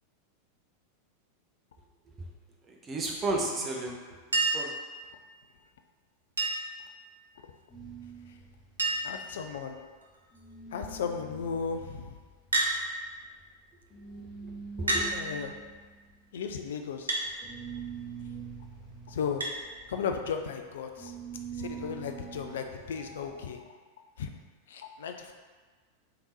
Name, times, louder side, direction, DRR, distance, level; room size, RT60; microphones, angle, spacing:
voice 1, 2.7-3.9 4.3-4.7 14.4-14.5 14.8-15.1, right 2 dB, 20° right, -1 dB, 0.7 m, -33 dB
Chink clink, 4.3-4.8 6.4-6.8 8.2-8.3 8.5-8.6 8.8-9.2 10.0-10.4 12.5-12.8 13.8-13.9 14.9-15.1 17.1-17.3 19.4-19.6 21.0-21.1, right 2 dB, 75° right, 0.6 m, -28 dB
sound 1, 7.7-10.1 10.3-23.4, right 6 dB, 20° left, 1.0 m, -45 dB
voice 2, 9.0-9.8 10.7-12.1 14.8-15.6 16.3-17.1 19.1-19.4 19.9-21.1 21.5-23.8 24.2-24.3 24.7-25.3, left 6 dB, 60° left, 5 dB, 0.4 m, -35 dB
3.6 x 3.0 x 3.8 m, 1.4 s
figure-of-eight pair, 90°, 0 cm